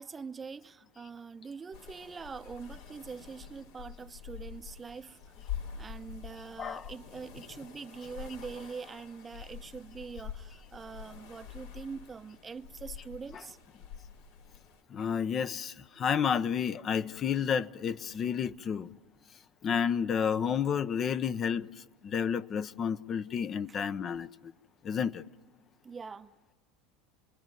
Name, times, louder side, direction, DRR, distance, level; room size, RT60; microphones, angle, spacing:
voice 1, 0.0-13.6 23.7-23.9 25.8-26.3, right 5 dB, 25° right, 0.8 m, -44 dB
sound 1, 1.7-14.8, left 8 dB, 80° left, 2.9 m, -46 dB
voice 2, 6.6-6.9 13.4-13.5 14.9-18.9 19.6-21.7 22.0-24.5 24.8-25.2, left 7 dB, 35° left, 0.8 m, -31 dB
28.5 x 21.5 x 9.3 m
hypercardioid pair, 90°, 0 cm